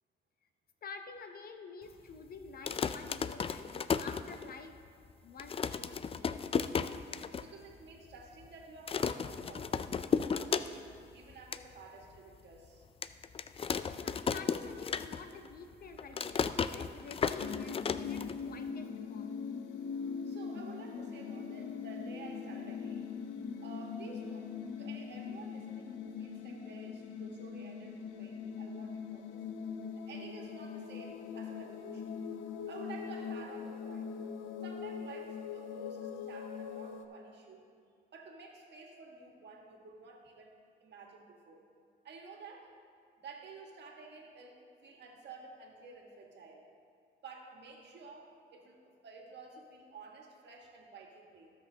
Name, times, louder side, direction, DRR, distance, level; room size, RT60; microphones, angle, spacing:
voice 1, 0.8-4.8 5.2-6.4 14.0-19.4, left 4 dB, 50° left, 7 dB, 0.8 m, -49 dB
sound 1, 2.5-4.8 5.1-5.2 5.4-7.5 7.8-7.9 8.1-8.5 8.9-11.0 11.3-11.6 12.2-12.3 13.0-15.5 15.7-18.7, left 6 dB, 30° left, 0.3 m, -34 dB
voice 2, 7.4-9.9 10.1-10.8 11.1-12.9 20.2-23.1 23.6-29.4 30.1-32.2 32.7-34.1 34.6-37.7 38.1-40.5 40.8-41.6 42.0-42.7 43.2-46.6 47.2-51.5, right 4 dB, 60° right, 0 dB, 1.7 m, -52 dB
sound 2, 17.4-37.1, left 6 dB, 80° left, 0.7 m, -41 dB
18.0 x 6.3 x 2.8 m, 2.3 s
cardioid pair, 90°, 20 cm